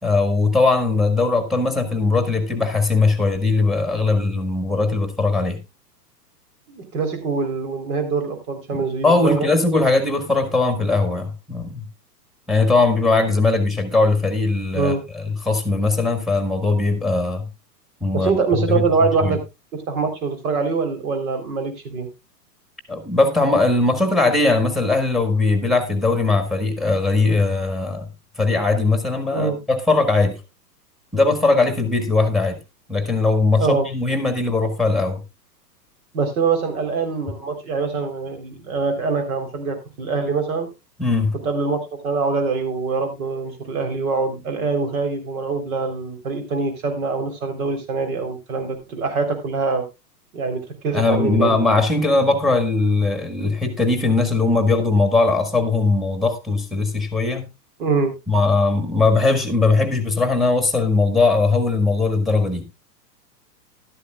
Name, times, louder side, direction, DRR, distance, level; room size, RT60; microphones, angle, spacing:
voice 1, 0.0-5.6 8.7-11.9 12.5-17.5 18.0-19.4 22.9-28.1 28.4-30.4 31.1-32.6 32.9-35.2 41.0-41.4 50.9-57.5 58.3-62.6, left 3 dB, ahead, 1.8 m, -20 dB
voice 2, 6.7-9.5 14.7-15.0 18.1-19.4 19.9-22.1 29.3-29.6 33.6-33.9 36.1-40.7 41.4-49.8 50.3-51.6 57.8-58.1, right 4 dB, 60° right, 3.9 m, -24 dB
13.0 x 12.5 x 2.4 m
hypercardioid pair, 115°, 49 cm